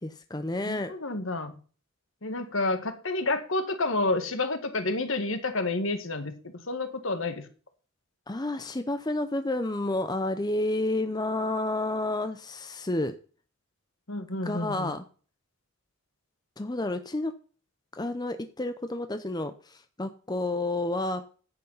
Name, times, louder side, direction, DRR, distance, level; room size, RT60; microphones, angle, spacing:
voice 1, 0.0-0.9 8.3-13.1 14.4-15.0 16.6-17.3 17.9-21.2, left 2 dB, 20° left, 9 dB, 0.6 m, -30 dB
voice 2, 0.6-1.6 2.2-7.4 14.1-14.9, left 2 dB, 65° left, 8 dB, 1.7 m, -30 dB
10.5 x 8.2 x 5.5 m, 0.39 s
head